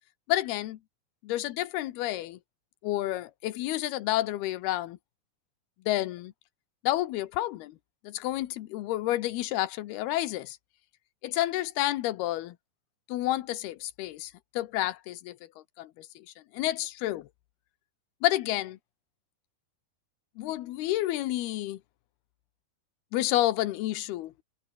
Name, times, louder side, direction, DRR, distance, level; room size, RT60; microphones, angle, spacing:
voice 1, 0.3-0.8 1.2-2.4 2.8-5.0 5.9-6.3 6.8-7.8 8.0-10.6 11.2-12.6 13.1-15.4 15.8-16.3 16.5-17.3 18.2-18.8 20.4-21.8 23.1-24.3, left 15 dB, 80° left, 3.0 m, -30 dB
omnidirectional pair, 4.6 m